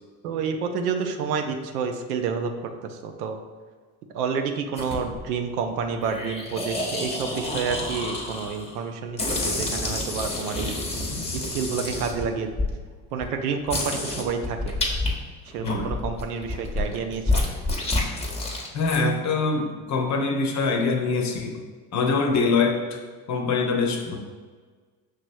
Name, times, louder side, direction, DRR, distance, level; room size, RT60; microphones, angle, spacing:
voice 1, 0.2-2.5 2.8-3.4 4.1-10.8 11.3-12.5 13.1-14.7 15.4-17.5, right 6 dB, 75° right, 6 dB, 0.6 m, -29 dB
sound 1, 4.8-5.3 6.0-8.7 9.2-12.7 13.2-13.3 13.7-15.1 15.5-19.0, left 2 dB, 15° left, 1.0 m, -28 dB
voice 2, 18.7-21.6 21.9-23.0 23.3-24.2, left 4 dB, 35° left, 3 dB, 0.8 m, -24 dB
6.1 x 3.0 x 2.6 m, 1.4 s
hypercardioid pair, 70°, 46 cm